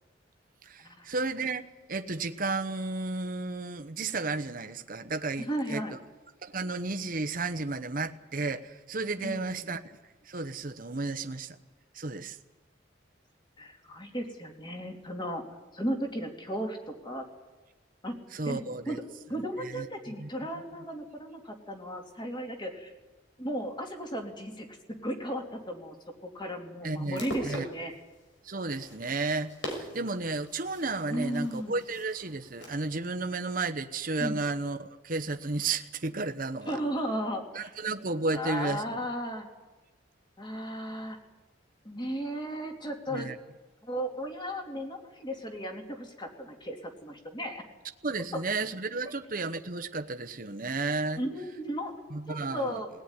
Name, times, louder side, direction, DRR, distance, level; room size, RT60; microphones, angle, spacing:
voice 1, 0.6-5.8 6.4-9.9 10.3-11.6 11.9-12.4 18.3-19.0 19.3-19.9 20.2-20.3 26.8-27.7 28.4-36.8 37.5-38.8 43.1-43.4 48.0-51.2 52.1-52.8, right 3 dB, 45° right, 8 dB, 1.0 m, -33 dB
voice 2, 5.4-6.0 9.2-9.7 13.6-15.4 15.7-17.3 18.0-18.2 18.4-18.6 18.9-19.0 19.3-22.9 23.4-24.7 25.0-25.9 26.2-27.9 31.1-31.8 34.2-34.4 36.7-37.7 38.3-39.5 40.4-41.2 41.8-43.3 43.8-47.6 48.3-48.4 51.2-51.9 52.3-52.9, equal, 25° left, 3 dB, 2.9 m, -35 dB
sound 1, 26.9-32.9, equal, 80° left, 6.1 m, -43 dB
21.0 x 17.5 x 9.9 m, 1.2 s
head